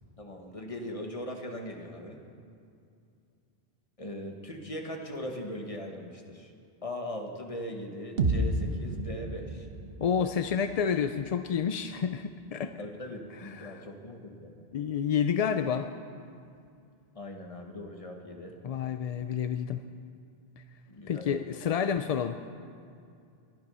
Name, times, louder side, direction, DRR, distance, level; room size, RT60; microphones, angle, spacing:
voice 1, 0.2-2.2 4.0-6.5 6.8-9.7 12.8-14.6 17.1-18.6 20.9-21.4, left 1 dB, 35° left, 2 dB, 1.5 m, -40 dB
sound 1, 8.2-12.1, right 2 dB, 70° right, 1.3 m, -33 dB
voice 2, 10.0-12.8 13.4-13.8 14.7-15.9 18.6-19.8 21.1-22.4, left 7 dB, 50° left, 9 dB, 0.4 m, -29 dB
22.5 x 10.5 x 5.5 m, 2.5 s
omnidirectional pair, 1.0 m